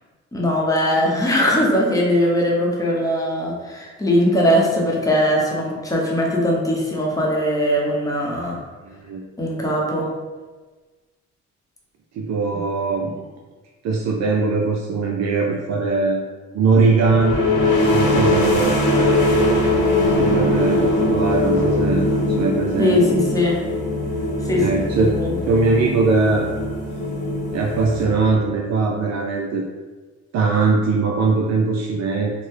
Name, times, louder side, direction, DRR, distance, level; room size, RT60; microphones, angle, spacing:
voice 1, 0.3-8.6 9.4-10.1 22.8-23.6 24.4-24.8 25.1-25.4, left 1 dB, 10° left, -3 dB, 0.8 m, -20 dB
voice 2, 8.8-9.2 12.1-13.2 13.8-16.3 16.5-17.5 17.8-19.2 20.2-22.1 22.4-23.1 24.5-25.1 25.5-26.5 27.5-29.6 30.3-32.3, right 4 dB, 60° right, -1 dB, 0.5 m, -20 dB
sound 1, 17.0-28.6, left 1 dB, 85° left, 0.8 m, -21 dB
3.3 x 2.1 x 3.2 m, 1.3 s
cardioid pair, 90°, 30 cm